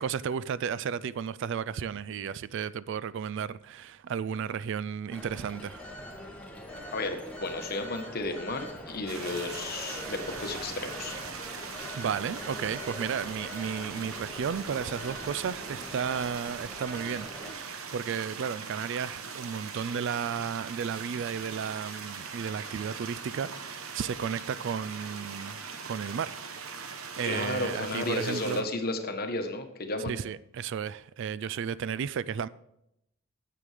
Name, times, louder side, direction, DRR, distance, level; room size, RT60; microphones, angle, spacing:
voice 1, 0.0-5.8 12.0-25.6 25.8-26.4 27.2-28.7 30.1-32.5, right 7 dB, 60° right, 0.3 m, -33 dB
Telephone, 5.1-17.5, equal, 5° left, 1.7 m, -43 dB
voice 2, 6.9-11.2 27.2-30.2, left 2 dB, 45° left, 1.2 m, -33 dB
sound 1, 9.1-28.6, right 5 dB, 85° right, 1.0 m, -41 dB
9.7 x 7.8 x 4.9 m
head